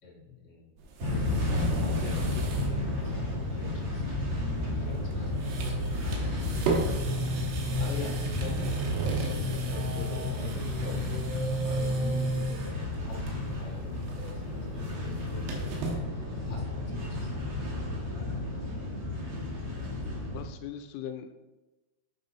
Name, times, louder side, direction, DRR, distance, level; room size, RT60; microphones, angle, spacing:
voice 1, 0.0-0.7 1.7-7.5 7.8-8.6 9.0-11.0 11.6-17.6, left 4 dB, 65° left, -4 dB, 1.0 m, -45 dB
sound 1, 0.8-2.7 3.1-3.2 4.9-5.1 5.4-12.8 13.2-13.6 13.9-16.0, right 2 dB, 85° right, 3.1 m, -33 dB
sound 2, 1.0-20.4, left 2 dB, 50° right, 1.5 m, -32 dB
voice 2, 20.3-21.3, left 9 dB, 80° left, 7 dB, 2.4 m, -40 dB
9.0 x 5.5 x 3.9 m, 1.1 s
omnidirectional pair, 4.6 m